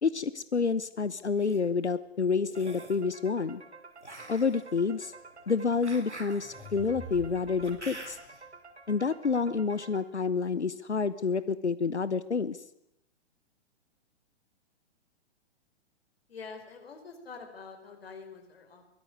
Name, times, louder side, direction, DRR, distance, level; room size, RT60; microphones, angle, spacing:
voice 1, 0.0-3.6 4.3-5.1 5.5-8.2 8.9-12.6, left 5 dB, 80° left, 16 dB, 1.0 m, -28 dB
sound 1, 1.1-1.6 2.5-3.0 4.0-8.4, right 1 dB, 90° right, 4.8 m, -47 dB
sound 2, 2.5-10.4, right 3 dB, 75° right, 3.2 m, -51 dB
sound 3, 6.4-8.3, left 3 dB, 20° left, 4.4 m, -46 dB
voice 2, 16.3-18.9, left 5 dB, 60° left, 5 dB, 4.7 m, -46 dB
22.5 x 17.0 x 9.6 m, 0.84 s
figure-of-eight pair, 115°, 33 cm